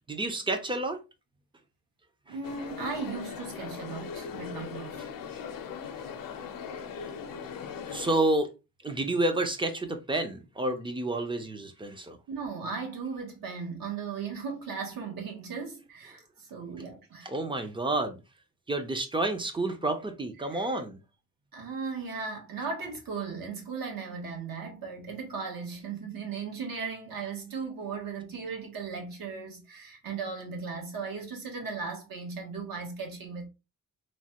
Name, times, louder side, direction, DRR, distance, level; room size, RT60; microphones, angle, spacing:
voice 1, 0.1-1.0 2.3-2.4 7.9-8.5 8.8-12.2 17.2-18.2 18.7-21.0, right 2 dB, 15° right, 0.3 m, -29 dB
voice 2, 2.3-5.1 12.3-17.3 20.4-20.8 21.5-33.5, right 5 dB, 75° right, 1.0 m, -37 dB
sound 1, 2.4-8.2, left 6 dB, 70° left, 0.5 m, -39 dB
3.1 x 2.1 x 2.8 m
wide cardioid pair, 175°, 35 cm